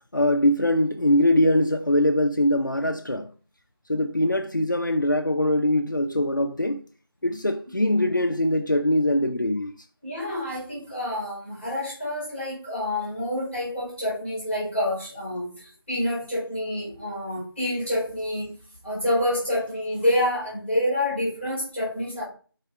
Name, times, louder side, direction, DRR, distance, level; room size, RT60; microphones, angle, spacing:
voice 1, 0.1-3.3 3.9-6.8 7.2-9.7, left 1 dB, 55° left, 0.8 m, -22 dB
voice 2, 10.0-15.5 15.9-18.5 18.8-22.2, left 1 dB, 5° right, 4.5 m, -27 dB
10.5 x 4.8 x 4.8 m
figure-of-eight pair, 175°, 13 cm